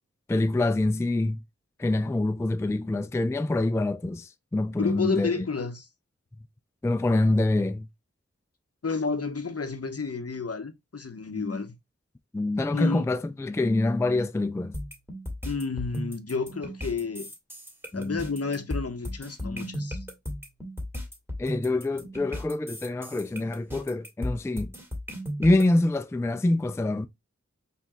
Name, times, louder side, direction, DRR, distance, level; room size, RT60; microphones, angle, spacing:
voice 1, 0.3-1.4 1.8-5.3 6.8-7.9 11.3-11.6 12.3-14.8 17.9-18.2 19.4-19.9 21.4-24.7 25.4-27.1, left 2 dB, 10° left, 0.3 m, -26 dB
voice 2, 4.8-5.9 8.8-11.8 12.7-13.1 15.4-17.3 17.9-20.1, left 4 dB, 55° left, 0.7 m, -31 dB
sound 1, 14.7-25.6, equal, 10° right, 2.0 m, -35 dB
4.5 x 3.4 x 2.8 m
wide cardioid pair, 45°, 29 cm